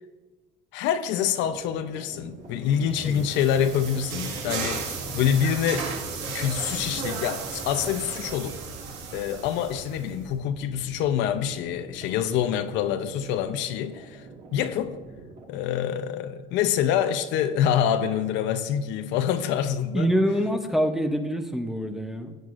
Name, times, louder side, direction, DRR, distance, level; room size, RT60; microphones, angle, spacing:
voice 1, 0.7-4.9 5.1-5.9 6.3-8.6 9.1-14.2 14.5-14.9 15.5-20.1, left 9 dB, 75° left, 0.7 m, -26 dB
sound 1, 1.3-15.4, right 3 dB, 40° right, 1.7 m, -46 dB
sound 2, 2.6-10.2, right 5 dB, 85° right, 1.9 m, -35 dB
voice 2, 19.9-22.4, equal, ahead, 0.7 m, -25 dB
16.0 x 9.2 x 2.5 m
cardioid pair, 140°, 19 cm